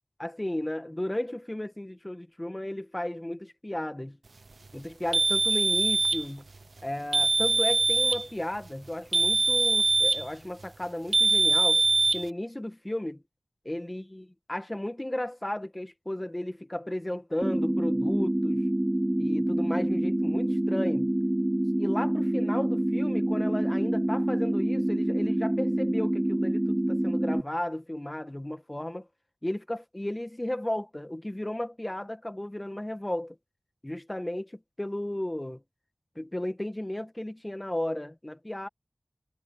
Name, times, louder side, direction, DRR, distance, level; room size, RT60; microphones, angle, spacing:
voice 1, 0.2-4.2 4.7-6.5 6.8-11.8 12.1-13.2 13.7-18.6 19.2-21.1 21.8-29.1 29.4-33.4 33.8-35.6 36.2-38.7, left 1 dB, 20° left, 1.8 m, -34 dB
sound 1, 5.1-6.3 7.1-8.3 9.1-10.3 11.1-12.3, right 3 dB, 75° right, 0.6 m, -23 dB
sound 2, 17.4-27.4, right 1 dB, 20° right, 0.4 m, -26 dB
wide cardioid pair, 55°, 0 cm